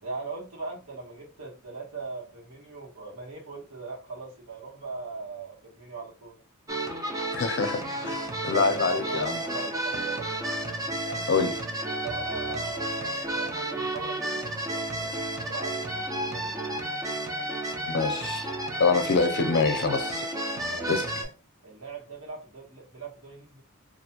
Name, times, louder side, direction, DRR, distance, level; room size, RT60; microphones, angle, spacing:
voice 1, 0.0-6.4 8.5-10.4 10.7-11.5 12.0-15.8 16.2-16.6 20.7-21.3 21.6-23.6, right 4 dB, 85° right, 1.2 m, -40 dB
sound 1, 6.7-21.2, right 1 dB, 15° right, 0.4 m, -32 dB
voice 2, 7.3-9.4 11.3-11.5 17.8-18.5 18.8-20.2 20.9-21.1, left 4 dB, 55° left, 0.5 m, -26 dB
2.4 x 2.2 x 2.8 m
head